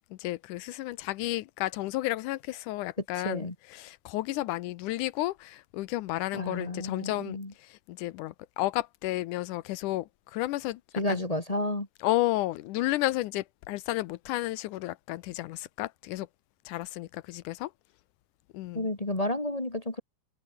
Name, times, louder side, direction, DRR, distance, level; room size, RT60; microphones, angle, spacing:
voice 1, 0.1-10.8 11.1-11.2 12.0-16.3 16.7-17.7 18.5-18.9, left 17 dB, 90° left, 2.3 m, -32 dB
voice 2, 3.1-3.5 6.3-7.5 10.9-11.9 18.7-20.0, left 1 dB, 15° left, 1.5 m, -31 dB
omnidirectional pair, 3.6 m